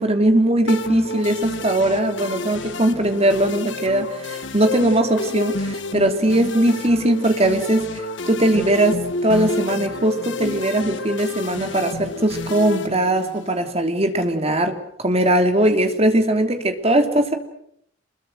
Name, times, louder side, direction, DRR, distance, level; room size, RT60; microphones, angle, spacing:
voice 1, 0.0-17.3, right 1 dB, 30° right, 6 dB, 3.2 m, -20 dB
sound 1, 0.7-13.7, left 2 dB, 65° left, 1.8 m, -30 dB
28.5 x 22.0 x 7.9 m, 0.71 s
head